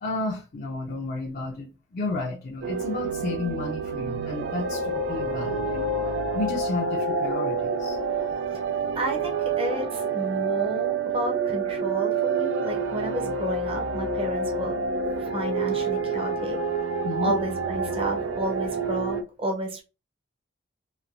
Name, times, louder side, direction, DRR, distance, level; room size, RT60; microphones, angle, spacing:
voice 1, 0.0-5.9 6.3-8.0 17.0-17.3, left 3 dB, 50° left, 0.5 m, -32 dB
sound 1, 2.6-19.2, right 4 dB, 85° right, 0.4 m, -28 dB
voice 2, 9.0-14.8 15.2-16.6 17.2-19.8, equal, 30° right, 0.6 m, -31 dB
3.1 x 2.5 x 2.5 m
head